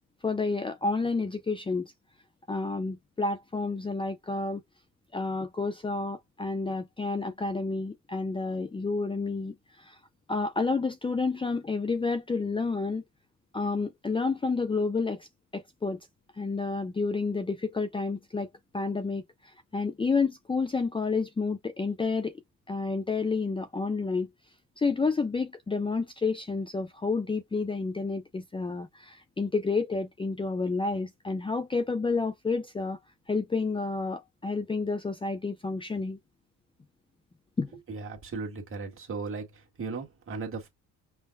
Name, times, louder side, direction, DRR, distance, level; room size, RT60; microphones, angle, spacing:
voice 1, 0.2-1.9 2.5-4.6 5.1-10.0 10.3-13.0 13.5-15.3 15.5-16.0 16.4-18.5 18.7-22.4 22.7-24.3 24.8-33.0 33.3-36.2 37.6-37.7, left 4 dB, 15° left, 0.5 m, -30 dB
voice 2, 37.9-39.5 39.8-40.7, right 4 dB, 40° right, 1.7 m, -36 dB
5.5 x 2.1 x 2.2 m
cardioid pair, 115°, 32 cm